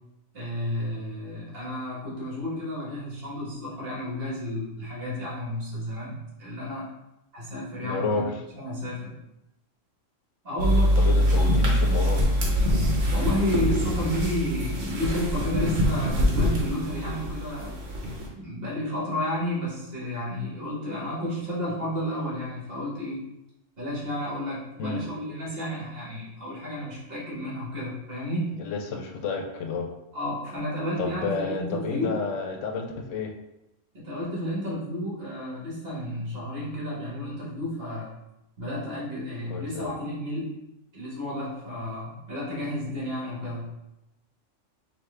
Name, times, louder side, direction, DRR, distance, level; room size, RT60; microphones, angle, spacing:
voice 1, 0.3-6.9 7.3-9.1 10.4-11.0 13.1-17.7 18.3-23.2 23.8-28.5 30.1-32.2 33.9-38.1 38.6-40.6 40.9-43.6, left 1 dB, 50° right, -6 dB, 1.7 m, -31 dB
voice 2, 7.8-8.4 11.0-12.3 24.8-25.0 28.5-29.9 31.0-33.3 39.5-39.9, left 4 dB, 75° left, 3 dB, 0.9 m, -30 dB
sound 1, 10.6-18.3, equal, 75° right, 1.2 m, -24 dB
4.8 x 2.7 x 3.3 m, 0.89 s
omnidirectional pair, 1.3 m